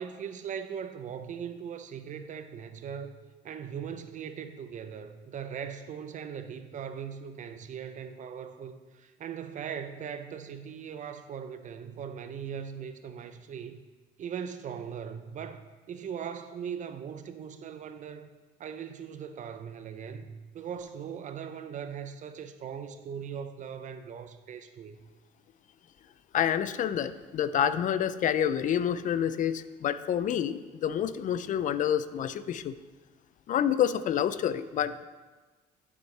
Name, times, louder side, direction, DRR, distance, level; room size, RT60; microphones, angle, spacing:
voice 1, 0.0-13.8 14.2-18.3 18.6-25.0, right 7 dB, 50° right, 9 dB, 0.6 m, -40 dB
voice 2, 26.3-32.8 33.5-35.0, left 9 dB, 50° left, 14 dB, 0.5 m, -28 dB
11.0 x 7.3 x 3.3 m, 1.3 s
cardioid pair, 110°, 17 cm